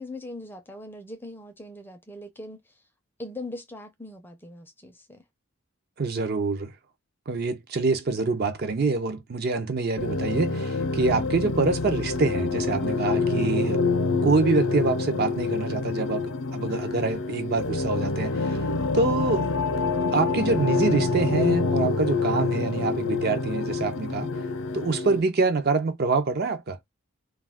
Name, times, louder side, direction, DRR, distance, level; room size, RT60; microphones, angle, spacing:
voice 1, 0.0-2.7 3.2-5.2, left 2 dB, 10° left, 0.5 m, -40 dB
voice 2, 6.0-6.7 7.3-13.8 14.1-18.6 18.9-19.5 20.1-24.3 24.7-26.8, right 3 dB, 50° right, 0.5 m, -25 dB
sound 1, 10.0-25.2, left 3 dB, 80° left, 0.5 m, -26 dB
2.3 x 2.2 x 3.4 m
head